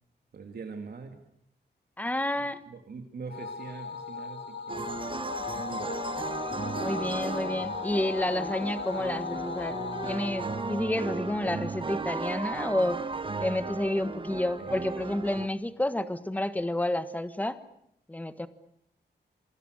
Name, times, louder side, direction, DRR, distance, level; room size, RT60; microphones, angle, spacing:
voice 1, 0.3-1.3 2.7-4.9 5.5-6.0 14.6-15.0, right 5 dB, 60° right, 5 dB, 2.4 m, -43 dB
voice 2, 2.0-2.6 6.8-9.8 10.0-13.0 13.4-17.6 18.1-18.5, left 1 dB, 10° left, 12 dB, 1.4 m, -30 dB
sound 1, 3.3-11.9, left 6 dB, 75° left, 2.7 m, -38 dB
Orchestrion - I Can't Give You Anything, 4.7-15.5, right 4 dB, 30° right, 1.1 m, -35 dB
27.5 x 24.5 x 6.6 m, 0.72 s
wide cardioid pair, 175°, 18 cm